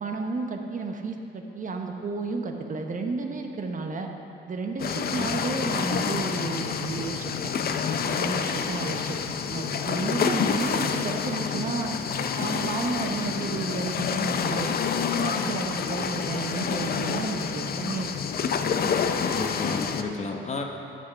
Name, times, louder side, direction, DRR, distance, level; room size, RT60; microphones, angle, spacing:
voice 1, 0.0-4.1 4.5-7.4 8.0-9.2 9.5-11.9 12.4-14.8 15.1-18.1, right 4 dB, 40° right, 3 dB, 0.9 m, -32 dB
sound 1, 4.8-20.0, left 6 dB, 50° left, 0.5 m, -28 dB
voice 2, 19.3-20.6, left 3 dB, 35° left, 3 dB, 0.9 m, -32 dB
10.0 x 5.9 x 5.5 m, 2.7 s
cardioid pair, 90°, 20 cm